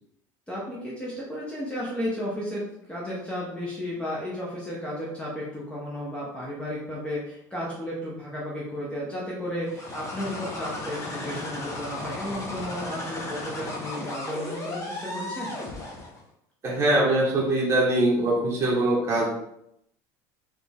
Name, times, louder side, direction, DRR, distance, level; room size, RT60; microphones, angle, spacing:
voice 1, 0.5-15.5, equal, 10° left, -6 dB, 1.2 m, -33 dB
sound 1, 9.6-16.2, left 2 dB, 30° left, 1.3 m, -35 dB
voice 2, 16.6-19.3, right 1 dB, 25° right, -5 dB, 1.5 m, -22 dB
3.9 x 3.5 x 3.5 m, 0.77 s
supercardioid pair, 105°, 10 cm